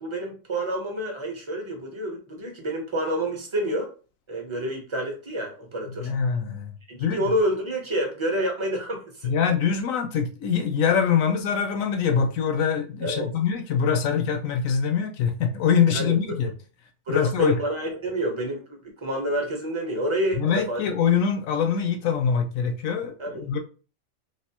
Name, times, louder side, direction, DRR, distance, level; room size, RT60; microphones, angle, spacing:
voice 1, 0.0-3.9 4.3-6.1 6.9-9.3 13.0-13.3 15.9-16.4 17.1-20.8 23.2-23.5, equal, 25° right, 0.7 m, -28 dB
voice 2, 6.0-6.7 7.0-7.2 9.2-16.5 17.1-17.6 20.4-23.1 23.4-23.6, left 7 dB, 75° left, 1.0 m, -24 dB
3.3 x 2.7 x 2.8 m
omnidirectional pair, 1.4 m